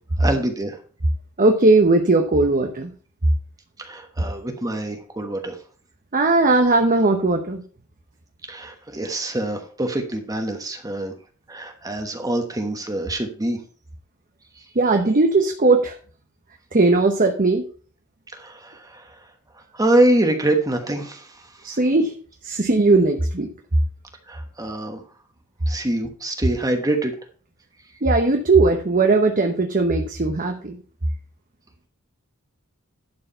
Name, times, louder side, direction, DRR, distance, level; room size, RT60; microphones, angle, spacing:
voice 1, 0.2-0.8 3.8-5.6 8.5-11.1 11.5-13.6 18.3-19.1 19.7-21.8 24.3-25.0 25.7-27.1, right 1 dB, 15° right, 5 dB, 1.2 m, -25 dB
voice 2, 1.4-2.9 6.1-7.6 14.7-16.0 16.7-17.7 21.6-22.1 22.4-23.5 28.0-30.8, right 3 dB, 40° right, 4 dB, 1.0 m, -18 dB
11.5 x 4.8 x 5.6 m, 0.42 s
head